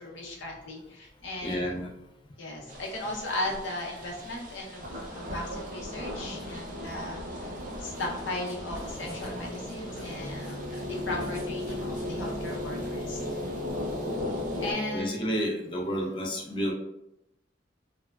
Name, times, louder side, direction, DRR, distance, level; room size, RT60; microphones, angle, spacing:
voice 1, 0.0-1.7 2.4-7.5 7.8-13.4 14.6-15.3 15.9-16.0, left 2 dB, 80° left, -1 dB, 0.6 m, -37 dB
voice 2, 1.4-1.9 14.9-16.7, equal, 25° left, -1 dB, 0.4 m, -30 dB
sound 1, 2.7-14.7, left 1 dB, 45° right, 0.5 m, -38 dB
sound 2, 7.9-12.8, left 1 dB, 5° right, 0.8 m, -50 dB
sound 3, 8.8-15.0, left 1 dB, 40° left, 0.8 m, -37 dB
3.3 x 2.0 x 2.3 m, 0.83 s
head